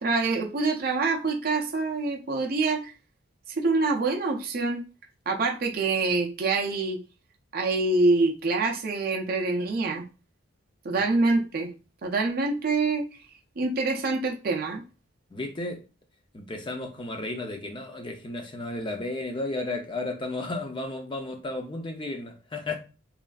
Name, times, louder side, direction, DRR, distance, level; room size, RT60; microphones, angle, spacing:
voice 1, 0.0-2.9 3.6-4.8 5.3-7.0 7.5-10.0 10.8-11.7 12.0-13.1 13.6-14.8, right 3 dB, 45° right, 0.5 m, -25 dB
voice 2, 15.3-15.8 16.3-22.8, left 2 dB, 25° left, 0.4 m, -33 dB
3.1 x 2.4 x 2.3 m
head